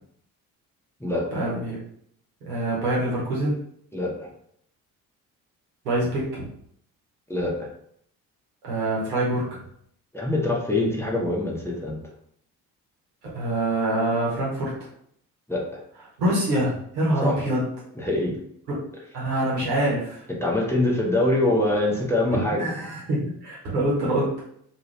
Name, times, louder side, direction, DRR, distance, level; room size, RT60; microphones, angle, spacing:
voice 1, 1.3-1.8 2.4-3.5 5.8-6.5 8.6-9.6 13.3-14.7 16.2-17.6 18.7-18.8 19.1-20.2 22.3-24.4, right 1 dB, 75° right, -6 dB, 1.3 m, -25 dB
voice 2, 3.9-4.3 7.3-7.7 10.1-12.0 15.5-15.8 17.2-17.4 18.0-18.3 20.4-22.7, left 2 dB, 5° left, -3 dB, 0.8 m, -24 dB
2.7 x 2.7 x 3.1 m, 0.67 s
figure-of-eight pair, 45°, 46 cm